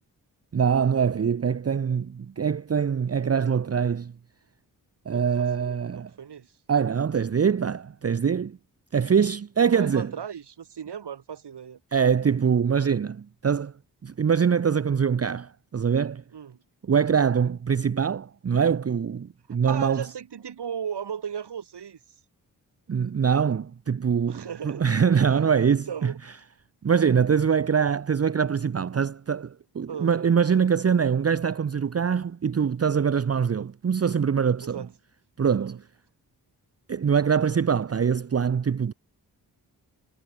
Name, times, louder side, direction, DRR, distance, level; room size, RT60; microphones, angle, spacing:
voice 1, 0.5-4.1 5.1-6.1 6.7-8.6 8.9-10.1 11.9-13.7 14.0-16.2 16.9-20.0 22.9-26.1 26.8-34.9 35.4-35.8 36.9-38.9, right 7 dB, 35° right, 0.8 m, -23 dB
voice 2, 5.1-6.5 9.6-11.8 16.3-16.6 19.6-22.0 24.3-26.2 29.9-30.1 34.6-34.9 35.6-35.8, right 8 dB, 80° right, 6.4 m, -36 dB
cardioid pair, 45°, 40 cm